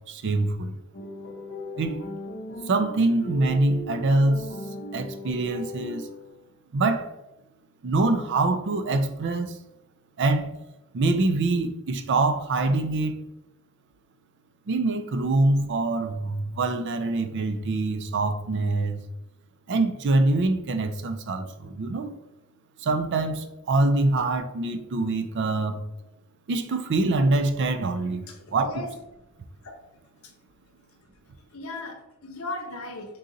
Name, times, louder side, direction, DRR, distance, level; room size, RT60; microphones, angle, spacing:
voice 1, 0.1-0.7 1.8-2.0 2.7-4.5 4.9-6.0 6.7-7.1 7.8-9.6 10.2-10.6 10.9-13.2 14.7-19.0 19.7-22.1 22.8-25.8 26.5-28.2 28.5-28.8, right 2 dB, 55° right, 0.4 m, -24 dB
sound 1, 0.9-6.4, equal, 50° left, 0.7 m, -37 dB
voice 2, 28.3-28.9 29.6-29.8 31.5-33.2, left 2 dB, 80° left, 0.8 m, -37 dB
3.8 x 2.8 x 3.8 m
head